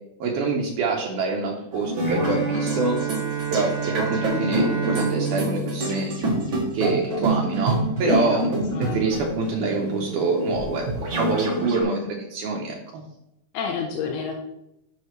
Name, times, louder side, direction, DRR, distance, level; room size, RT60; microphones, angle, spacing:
voice 1, 0.2-3.0 3.5-6.1 6.7-8.5 8.8-13.0, right 3 dB, 90° right, 1 dB, 1.7 m, -26 dB
sound 1, 1.7-11.8, right 2 dB, 45° right, 1.7 m, -27 dB
Bowed string instrument, 2.0-6.9, right 5 dB, 30° right, 0.8 m, -29 dB
voice 2, 8.0-8.4 8.7-9.0 9.4-9.5 13.5-14.3, left 6 dB, 85° left, 2 dB, 2.7 m, -28 dB
9.9 x 5.7 x 3.1 m, 0.85 s
omnidirectional pair, 4.5 m